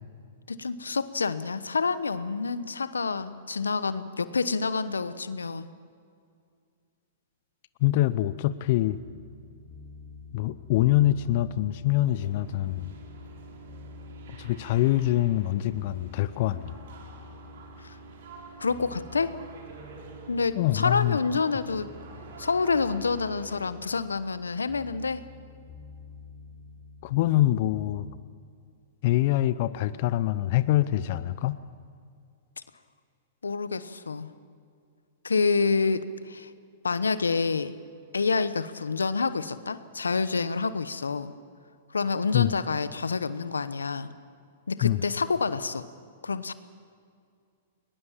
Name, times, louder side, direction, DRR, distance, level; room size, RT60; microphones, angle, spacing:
voice 1, 0.5-5.7 17.8-18.0 18.6-19.3 20.3-21.9 22.4-25.2 33.4-34.3 35.2-36.5 36.8-37.7 38.1-41.3 41.9-44.1 44.7-45.9 46.2-46.5, left 4 dB, 90° left, 14 dB, 1.0 m, -28 dB
voice 2, 7.8-9.0 10.3-12.9 14.4-16.8 20.6-21.2 27.0-28.1 29.0-31.6 42.3-42.5 44.8-45.0, left 15 dB, 55° left, 15 dB, 0.8 m, -24 dB
sound 1, 8.8-28.2, left 4 dB, 25° left, 3.2 m, -49 dB
sound 2, 12.0-23.7, right 5 dB, 65° right, 4.3 m, -48 dB
21.5 x 20.5 x 7.3 m, 2.3 s
hypercardioid pair, 115°, 0 cm